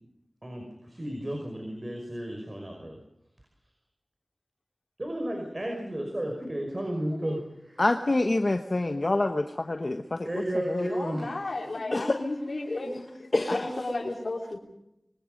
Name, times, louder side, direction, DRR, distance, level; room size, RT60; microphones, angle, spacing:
voice 1, 0.4-3.0 5.0-7.9 10.2-11.3, right 1 dB, 40° right, 2 dB, 5.7 m, -33 dB
voice 2, 7.8-10.0 10.7-10.9 13.3-13.5, left 2 dB, 55° left, 6 dB, 1.2 m, -26 dB
voice 3, 10.8-14.6, left 2 dB, 75° left, -1 dB, 4.7 m, -34 dB
25.0 x 23.5 x 5.4 m, 0.84 s
wide cardioid pair, 40°, 0 cm